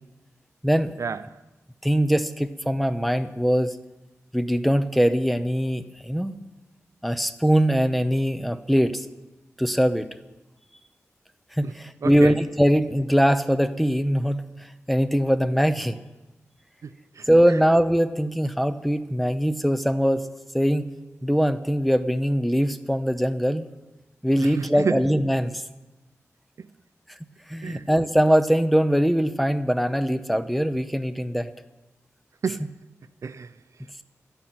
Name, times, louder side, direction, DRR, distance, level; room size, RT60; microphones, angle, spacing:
voice 1, 1.0-1.4 11.6-11.7 12.0-12.4 16.8-17.6 24.4-25.0 26.6-26.7 27.6-27.9 32.4-32.7 33.2-33.5, right 5 dB, 70° right, 0.5 m, -31 dB
voice 2, 1.8-3.8 4.3-6.4 7.0-9.1 9.6-10.1 11.6-14.4 14.9-16.0 17.3-20.3 20.5-20.9 21.2-23.7 24.2-25.6 27.5-31.5, equal, ahead, 0.8 m, -22 dB
12.5 x 10.0 x 9.3 m
wide cardioid pair, 95°, 5 cm